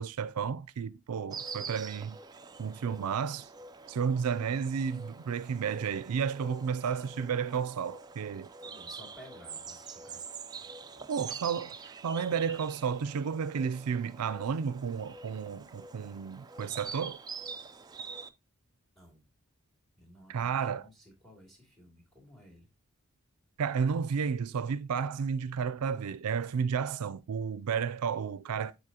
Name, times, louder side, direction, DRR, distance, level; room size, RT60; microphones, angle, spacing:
voice 1, 0.0-2.2 2.6-3.5 3.9-8.5 11.1-17.2 20.3-20.9 23.6-28.7, right 6 dB, 85° right, 0.4 m, -32 dB
Insect, 1.3-18.3, right 5 dB, 20° right, 0.3 m, -45 dB
voice 2, 8.6-11.0 18.9-19.2 20.0-22.7, equal, ahead, 2.5 m, -55 dB
9.9 x 4.1 x 2.8 m
head